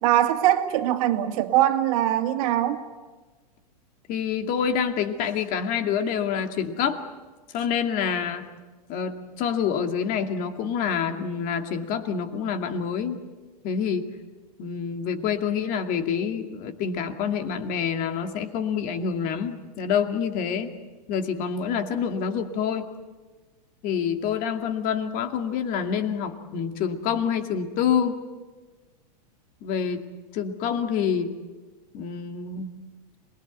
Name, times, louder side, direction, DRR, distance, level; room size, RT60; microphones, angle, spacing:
voice 1, 0.0-2.8, right 12 dB, 60° right, 6 dB, 2.4 m, -22 dB
voice 2, 4.1-7.0 7.5-8.5 8.9-13.2 13.6-14.1 14.6-20.7 21.1-22.9 23.8-28.2 29.6-30.0 30.3-31.3 31.9-32.7, left 7 dB, 40° left, 6 dB, 2.4 m, -27 dB
27.0 x 20.5 x 8.3 m, 1.3 s
hypercardioid pair, 120°, 21 cm